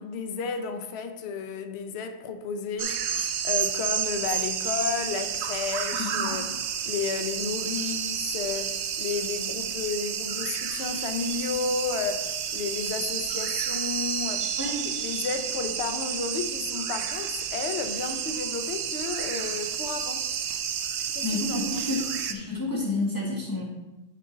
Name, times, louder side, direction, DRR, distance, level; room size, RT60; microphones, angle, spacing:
voice 1, 0.0-6.5 6.8-14.5 15.0-20.3 21.1-21.9, left 5 dB, 65° left, 0.9 m, -32 dB
sound 1, 2.8-22.3, right 8 dB, 70° right, 0.9 m, -30 dB
voice 2, 6.0-6.4 14.6-14.9 21.2-23.6, left 2 dB, 15° left, 1.4 m, -30 dB
7.7 x 5.1 x 3.9 m
omnidirectional pair, 1.2 m